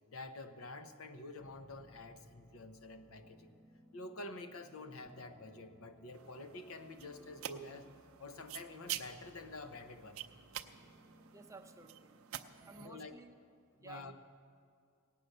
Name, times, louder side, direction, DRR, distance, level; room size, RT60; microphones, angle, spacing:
voice 1, 0.1-3.6 3.9-7.9 8.2-10.2 12.8-13.2 13.8-14.1, left 2 dB, 75° left, 9 dB, 0.8 m, -48 dB
sound 1, 1.4-13.2, equal, 10° left, 1.5 m, -63 dB
sound 2, 6.1-12.9, right 11 dB, 70° right, 0.5 m, -48 dB
voice 2, 11.3-12.2 12.6-13.3 13.8-14.1, right 3 dB, 15° right, 5 dB, 0.6 m, -54 dB
17.5 x 8.6 x 6.6 m, 2.2 s
head